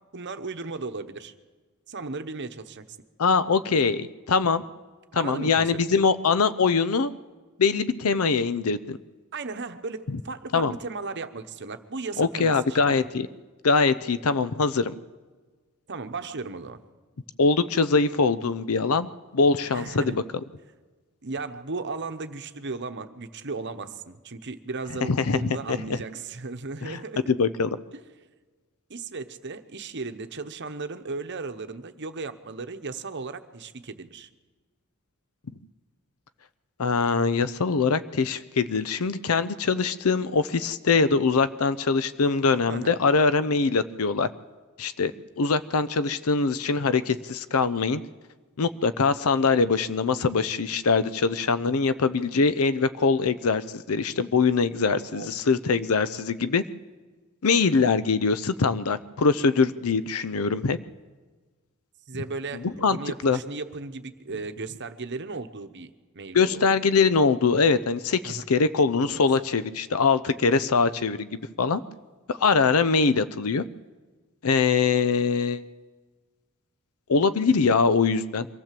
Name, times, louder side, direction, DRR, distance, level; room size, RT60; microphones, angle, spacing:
voice 1, 0.1-1.3 1.9-2.9 5.1-5.7 9.3-13.1 15.9-16.8 19.6-20.2 21.2-27.2 27.9-28.0 28.9-34.3 42.7-43.0 55.1-55.3 62.1-66.6 68.2-68.5 69.1-69.3, right 3 dB, 55° right, 8 dB, 1.0 m, -36 dB
voice 2, 3.2-4.6 5.1-7.1 7.6-9.0 10.5-10.7 12.2-13.3 13.6-14.9 17.4-20.2 25.1-26.0 26.8-27.0 27.3-27.7 36.8-44.3 44.8-45.1 45.4-48.0 48.6-56.6 57.4-60.8 62.6-63.0 63.2-63.4 66.3-71.8 72.3-73.6 74.4-75.6 77.1-78.5, left 4 dB, 80° left, 14 dB, 0.6 m, -23 dB
24.0 x 15.0 x 7.6 m, 1.4 s
head